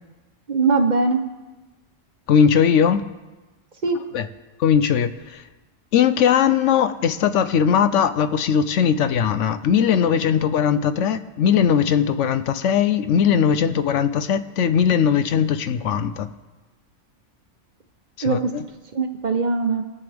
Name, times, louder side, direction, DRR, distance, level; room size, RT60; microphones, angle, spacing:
voice 1, 0.5-1.2 3.8-4.0 18.2-18.4 18.9-19.8, right 4 dB, 40° right, 5 dB, 0.9 m, -20 dB
voice 2, 2.3-3.0 4.1-4.3 4.6-5.4 5.9-16.3 18.2-18.6, left 8 dB, 75° left, 12 dB, 0.9 m, -19 dB
22.0 x 7.7 x 3.4 m, 1.2 s
omnidirectional pair, 1.3 m